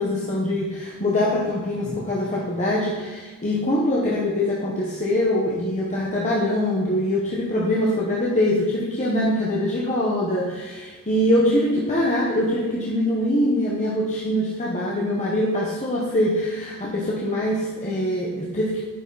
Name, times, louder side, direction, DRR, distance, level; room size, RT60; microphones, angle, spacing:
voice 1, 0.0-18.8, left 1 dB, 30° left, -5 dB, 1.2 m, -23 dB
9.9 x 6.0 x 4.1 m, 1.4 s
head